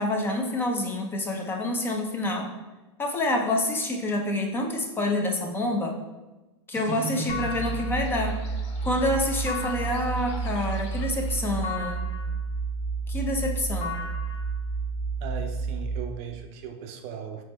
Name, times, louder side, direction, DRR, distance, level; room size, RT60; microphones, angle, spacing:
voice 1, 0.0-2.5 3.0-6.0 6.7-8.4 8.8-12.1 13.1-14.0, left 1 dB, 15° left, 3 dB, 0.4 m, -27 dB
sound 1, 6.7-11.7, left 3 dB, 75° left, 0.9 m, -48 dB
voice 2, 6.9-7.9 15.2-17.4, right 4 dB, 45° right, 6 dB, 0.5 m, -36 dB
sound 2, 7.3-16.0, right 3 dB, 40° left, 0.9 m, -30 dB
3.4 x 3.1 x 4.1 m, 1.1 s
supercardioid pair, 135°, 15 cm